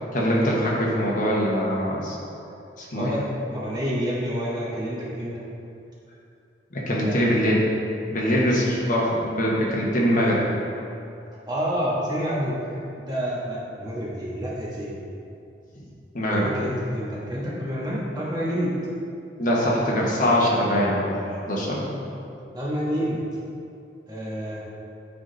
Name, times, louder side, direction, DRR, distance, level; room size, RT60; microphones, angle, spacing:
voice 1, 0.1-3.1 6.7-7.7 8.1-10.5 16.1-16.5 19.4-22.0, equal, 45° left, -4 dB, 1.3 m, -23 dB
voice 2, 2.9-3.2 3.5-5.3 7.0-7.2 8.2-8.4 11.5-14.9 16.3-18.7 22.5-23.2 24.1-24.6, equal, 25° right, -7 dB, 1.5 m, -28 dB
8.3 x 4.2 x 4.0 m, 2.6 s
head